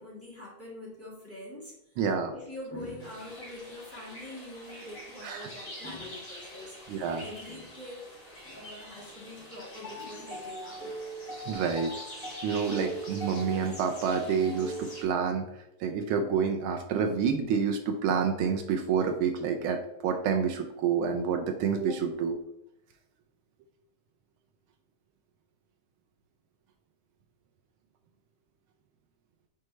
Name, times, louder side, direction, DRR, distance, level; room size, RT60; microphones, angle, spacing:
voice 1, 0.0-2.0 2.3-8.1 8.4-11.1, left 1 dB, 5° left, -6 dB, 1.8 m, -44 dB
voice 2, 2.0-2.3 5.2-5.5 6.9-7.2 11.5-11.9 12.4-15.4 15.8-22.4, right 6 dB, 80° right, 5 dB, 1.4 m, -28 dB
sound 1, 3.0-15.0, right 1 dB, 25° left, 2.7 m, -42 dB
6.3 x 4.6 x 3.2 m, 0.83 s
omnidirectional pair, 2.3 m